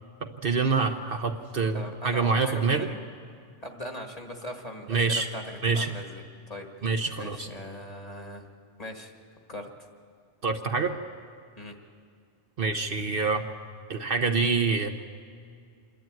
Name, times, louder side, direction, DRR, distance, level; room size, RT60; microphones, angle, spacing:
voice 1, 0.4-2.9 4.9-5.3 5.6-5.9 6.8-7.5 10.4-10.9 12.6-13.5 13.9-14.9, right 4 dB, 55° right, 5 dB, 1.0 m, -26 dB
voice 2, 1.7-3.0 3.6-6.9 7.2-8.5 8.8-9.1 9.5-9.9 11.6-11.8, left 1 dB, 30° left, 3 dB, 1.8 m, -40 dB
26.5 x 12.0 x 9.1 m, 2.2 s
omnidirectional pair, 1.2 m